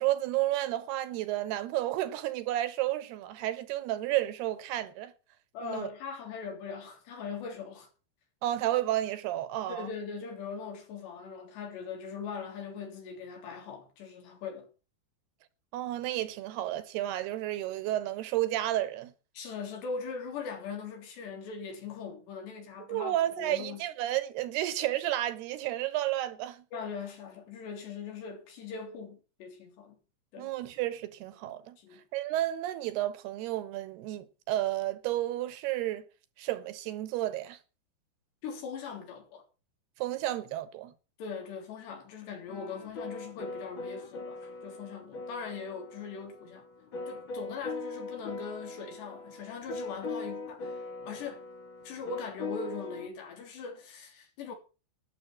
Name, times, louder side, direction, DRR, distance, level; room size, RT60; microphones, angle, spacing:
voice 1, 0.0-5.1 5.6-5.9 8.4-9.9 15.7-19.1 22.9-26.6 30.4-31.8 32.1-36.0 36.4-37.6 40.0-40.9, right 14 dB, 75° right, 2.9 m, -31 dB
voice 2, 5.5-7.9 9.7-14.7 19.4-23.8 26.7-30.0 30.3-30.5 31.8-32.0 38.4-39.4 41.2-46.7 47.1-50.8 51.1-51.4 51.9-54.6, left 5 dB, 80° left, 5.6 m, -40 dB
sound 1, 42.5-53.1, left 3 dB, 45° left, 1.7 m, -41 dB
11.5 x 8.9 x 7.3 m
omnidirectional pair, 4.8 m